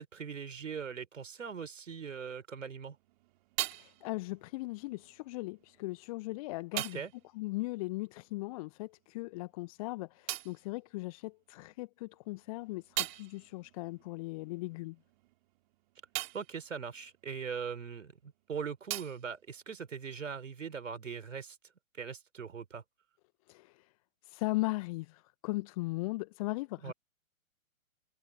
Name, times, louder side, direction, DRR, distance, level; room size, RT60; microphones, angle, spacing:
voice 1, 0.0-3.0 6.7-7.1 16.3-21.6 21.9-22.8 26.8-26.9, right 6 dB, 60° right, 3.7 m, -41 dB
sound 1, 2.7-8.8 9.0-11.7 12.1-18.1 18.4-20.4, right 17 dB, 35° right, 2.6 m, -43 dB
voice 2, 3.7-7.0 7.3-15.0 23.5-23.9 24.2-26.9, left 22 dB, 25° left, 1.1 m, -38 dB
figure-of-eight pair, 120°, 42 cm